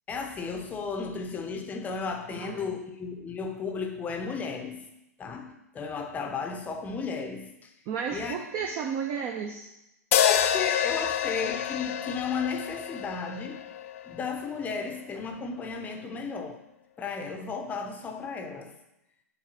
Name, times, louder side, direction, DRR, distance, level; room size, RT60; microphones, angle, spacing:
voice 1, 0.1-4.9 5.2-7.7 8.1-8.7 10.2-13.6 14.1-16.6 17.0-18.8, left 5 dB, 15° left, 0.8 m, -34 dB
voice 2, 2.3-2.8 7.9-9.7, right 6 dB, 35° right, 0.8 m, -33 dB
sound 1, 10.1-14.4, left 10 dB, 55° left, 0.5 m, -28 dB
7.3 x 3.2 x 6.1 m
hypercardioid pair, 115°, 9 cm